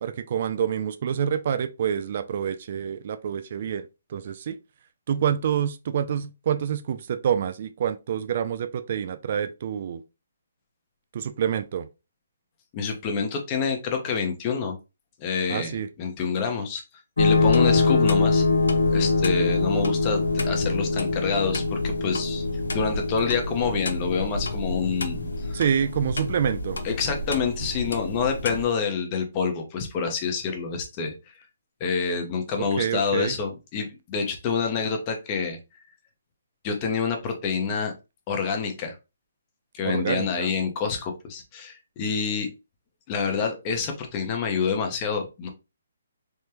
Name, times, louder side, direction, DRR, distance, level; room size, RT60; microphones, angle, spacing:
voice 1, 0.0-4.6 5.1-10.0 11.1-11.9 15.5-15.9 25.5-26.8 32.6-33.3 39.8-40.5, right 8 dB, 45° right, 0.3 m, -27 dB
voice 2, 12.7-14.8 15.2-16.8 17.2-18.5 18.9-22.4 22.7-25.6 26.8-31.1 31.8-35.6 36.6-37.9 38.3-39.0 39.7-42.5 43.1-45.5, left 5 dB, 25° left, 0.7 m, -27 dB
sound 1, 17.2-28.6, left 3 dB, 90° left, 0.6 m, -24 dB
3.4 x 2.1 x 2.9 m
hypercardioid pair, 155°, 0 cm